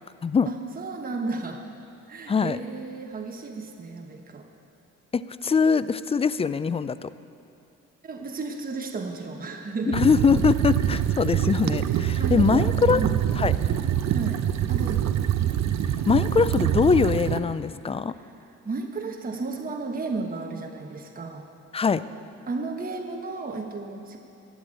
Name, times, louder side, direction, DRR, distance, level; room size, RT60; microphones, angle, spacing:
voice 1, 0.5-1.7 2.1-4.5 8.0-10.1 12.2-13.3 14.1-15.2 18.1-18.3 18.6-21.5 22.5-24.2, right 3 dB, 30° right, 2 dB, 1.1 m, -33 dB
voice 2, 2.3-2.6 5.1-7.1 9.9-13.0 13.4-13.5 16.1-18.1 21.7-22.0, left 5 dB, 20° left, 15 dB, 0.4 m, -22 dB
sound 1, 9.9-17.4, right 11 dB, 65° right, 0.7 m, -25 dB
12.5 x 8.1 x 8.8 m, 2.5 s
cardioid pair, 90°, 30 cm